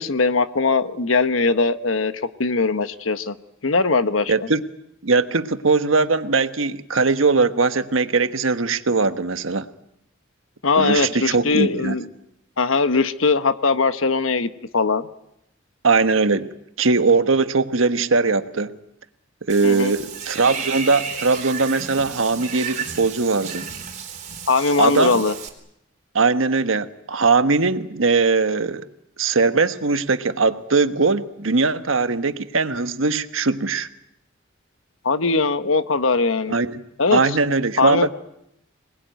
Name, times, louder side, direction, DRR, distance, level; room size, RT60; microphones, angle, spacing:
voice 1, 0.0-2.1 2.4-3.3 3.6-4.3 10.6-12.1 12.6-15.1 19.6-19.9 24.5-25.3 35.0-36.5 37.0-37.2 37.8-38.1, left 4 dB, 80° left, 11 dB, 1.2 m, -20 dB
voice 2, 4.3-4.6 5.0-9.7 10.8-11.9 15.8-16.5 16.8-18.7 19.5-23.7 24.8-25.2 26.1-28.9 29.2-33.9 36.5-36.8 37.1-38.1, right 4 dB, 80° right, 10 dB, 1.3 m, -20 dB
Water / Bathtub (filling or washing), 19.5-25.5, right 6 dB, 40° right, 3.8 m, -33 dB
26.5 x 20.0 x 9.3 m, 0.81 s
head